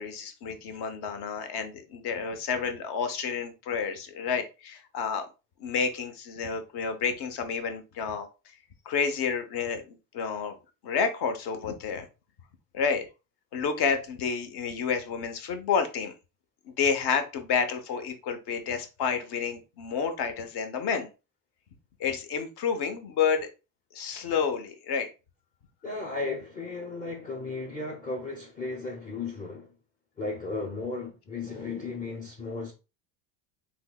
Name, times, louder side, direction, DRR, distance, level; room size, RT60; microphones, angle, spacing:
voice 1, 0.0-5.3 5.6-8.3 8.8-10.5 10.8-12.1 12.7-13.1 13.5-16.1 16.8-21.1 22.0-23.5 23.9-25.1, left 6 dB, 50° left, 0.9 m, -30 dB
voice 2, 25.8-29.7 30.2-32.7, left 3 dB, 15° left, 0.6 m, -35 dB
3.7 x 2.9 x 2.3 m
supercardioid pair, 90°, 50 cm